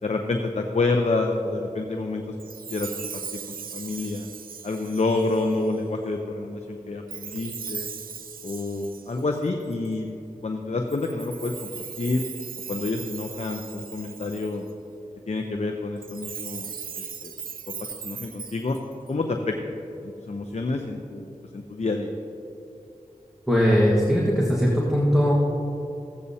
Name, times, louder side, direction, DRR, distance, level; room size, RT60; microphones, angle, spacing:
voice 1, 0.0-2.4 2.7-4.3 4.6-7.9 8.4-10.1 10.4-11.7 12.0-12.2 12.7-14.7 15.3-16.7 17.2-17.4 18.0-18.8 19.1-19.8 20.0-21.2 21.5-22.1, left 3 dB, 50° left, 3 dB, 0.7 m, -28 dB
Chime, 2.4-5.7 7.1-9.9 10.9-14.7 16.0-19.1, right 6 dB, 90° right, 0.4 m, -38 dB
voice 2, 23.5-25.3, equal, 5° right, -5 dB, 1.6 m, -20 dB
15.0 x 8.3 x 2.8 m, 2.8 s
cardioid pair, 40°, 14 cm